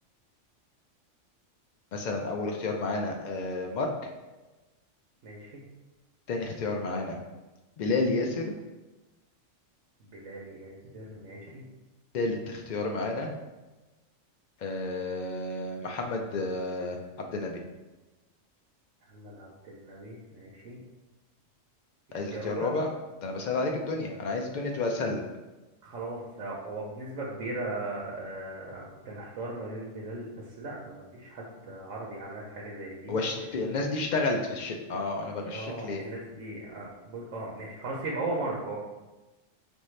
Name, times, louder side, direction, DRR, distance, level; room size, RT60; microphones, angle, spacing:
voice 1, 1.9-4.1 6.3-7.2 7.8-8.5 12.1-13.3 14.6-17.6 22.1-22.9 23.2-25.2 33.1-36.0, left 3 dB, 80° left, 2 dB, 0.4 m, -31 dB
voice 2, 5.2-5.6 10.1-11.6 19.1-20.8 22.3-22.7 25.8-33.2 35.5-38.8, right 2 dB, 75° right, -4 dB, 1.1 m, -38 dB
5.2 x 2.6 x 3.1 m, 1.1 s
omnidirectional pair, 1.3 m